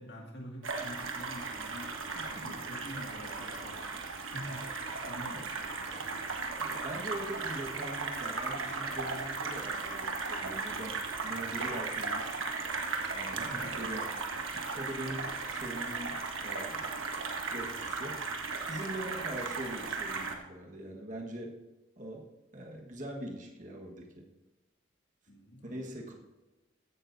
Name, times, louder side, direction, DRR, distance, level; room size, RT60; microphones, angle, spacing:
voice 1, 0.0-1.9 2.2-6.1 13.3-14.4 25.3-26.1, equal, 55° left, -1 dB, 2.1 m, -47 dB
sound 1, 0.6-20.3, right 4 dB, 85° right, 1.4 m, -36 dB
voice 2, 2.1-2.6 5.9-6.2 6.6-12.5 13.1-14.0 14.5-17.0 17.5-18.2 18.7-21.6 22.0-22.3 22.5-24.3 25.6-26.1, right 1 dB, 40° right, 0 dB, 1.5 m, -42 dB
15.0 x 11.0 x 2.7 m, 1.1 s
head